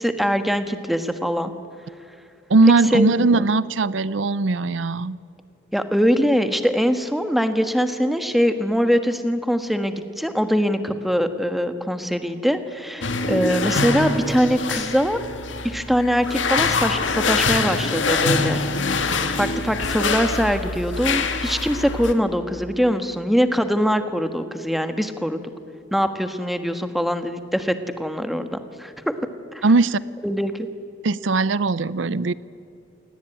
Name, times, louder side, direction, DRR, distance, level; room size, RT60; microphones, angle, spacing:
voice 1, 0.0-1.5 2.9-3.5 5.7-15.2 15.6-18.6 19.4-25.4 25.9-29.1 29.5-29.6 30.2-30.7, equal, ahead, 8 dB, 1.4 m, -22 dB
voice 2, 2.5-5.2 29.6-30.0 31.0-32.3, right 3 dB, 85° right, 18 dB, 0.6 m, -19 dB
sound 1, 13.0-22.1, left 4 dB, 85° left, 1.9 m, -24 dB
28.0 x 19.0 x 9.2 m, 2.7 s
head